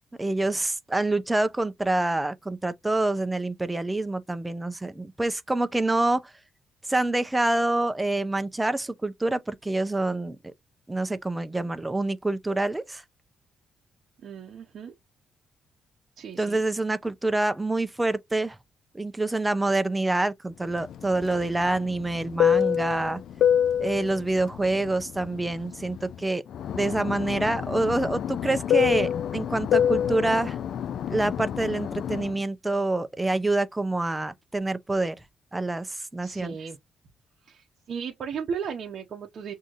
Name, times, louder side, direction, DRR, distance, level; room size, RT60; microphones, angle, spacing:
voice 1, 0.2-6.2 6.9-10.4 10.9-13.0 16.4-18.6 18.9-23.2 23.8-26.4 26.7-30.6 31.1-35.2 35.5-36.6, right 2 dB, 15° right, 0.5 m, -26 dB
voice 2, 14.2-14.9 16.2-16.6 36.2-36.8 37.5-39.5, right 6 dB, 60° right, 0.7 m, -35 dB
Fixed-wing aircraft airplane, 20.8-26.2 26.5-32.3, left 9 dB, 70° left, 0.3 m, -26 dB
6.1 x 2.7 x 2.5 m
cardioid pair, 90°, 0 cm